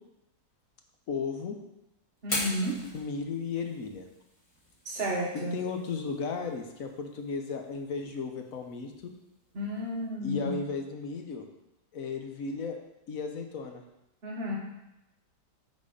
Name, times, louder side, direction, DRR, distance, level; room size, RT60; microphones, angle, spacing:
voice 1, 1.1-1.6 2.9-4.0 5.5-9.1 10.2-11.4 11.9-12.8 13.1-13.8, left 5 dB, 60° left, 4 dB, 1.2 m, -35 dB
Fire, 2.2-10.1, left 1 dB, 20° left, 1.8 m, -42 dB
voice 2, 2.2-2.8 4.8-5.6 9.5-10.6 14.2-14.6, equal, 40° right, -3 dB, 1.1 m, -32 dB
8.6 x 4.3 x 5.1 m, 0.91 s
omnidirectional pair, 1.8 m